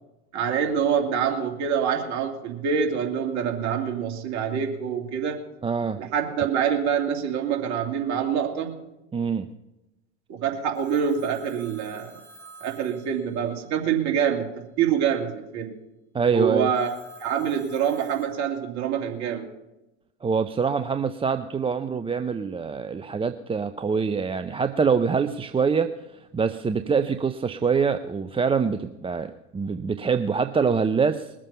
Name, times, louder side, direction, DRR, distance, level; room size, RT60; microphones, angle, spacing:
voice 1, 0.3-5.4 6.0-8.8 10.3-12.1 12.6-15.7 16.3-16.9 17.2-19.4, right 7 dB, 55° right, 2 dB, 2.6 m, -26 dB
voice 2, 5.6-6.0 9.1-9.5 16.1-16.7 20.2-25.9 26.3-31.3, right 5 dB, 15° right, 9 dB, 0.6 m, -24 dB
Telephone, 10.7-13.8 16.7-18.3, right 3 dB, 10° left, 5.8 m, -49 dB
21.5 x 7.5 x 5.6 m, 0.95 s
hypercardioid pair, 85°, 34 cm